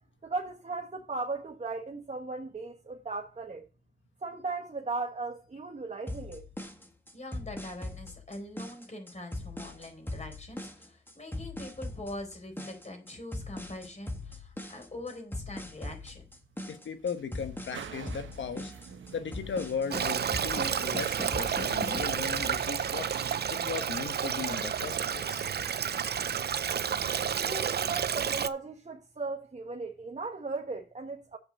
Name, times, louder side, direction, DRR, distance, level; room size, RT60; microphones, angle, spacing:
voice 1, 0.2-3.6 4.2-6.4 27.4-31.4, right 3 dB, 35° right, 1.5 m, -37 dB
sound 1, 6.1-22.1, left 1 dB, 10° left, 1.7 m, -40 dB
voice 2, 7.1-16.3, left 1 dB, 35° left, 4.3 m, -43 dB
sound 2, 15.8-26.4, right 7 dB, 80° right, 1.0 m, -48 dB
voice 3, 16.7-23.1 23.5-25.5, left 6 dB, 75° left, 1.1 m, -37 dB
Stream, 19.9-28.5, right 8 dB, 55° right, 0.6 m, -31 dB
7.9 x 5.7 x 6.5 m
cardioid pair, 60°, 20 cm